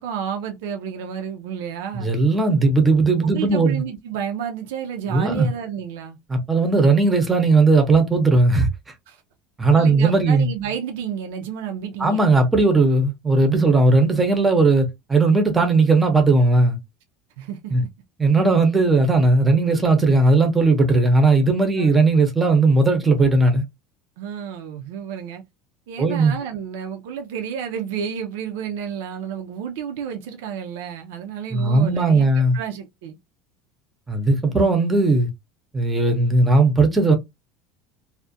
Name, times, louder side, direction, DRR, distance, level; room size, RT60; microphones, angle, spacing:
voice 1, 0.0-2.1 3.2-6.2 9.1-9.2 9.8-12.3 17.4-17.9 21.7-21.9 24.2-25.4 25.9-32.2 32.5-33.2, right 8 dB, 85° right, 0.4 m, -31 dB
voice 2, 1.9-3.8 5.1-5.5 6.3-8.7 9.6-10.5 12.0-16.8 17.7-17.8 18.2-23.6 26.0-26.4 31.5-32.6 34.1-35.3 35.7-37.2, right 3 dB, 10° right, 0.6 m, -17 dB
2.3 x 2.1 x 2.5 m
cardioid pair, 155°, 0 cm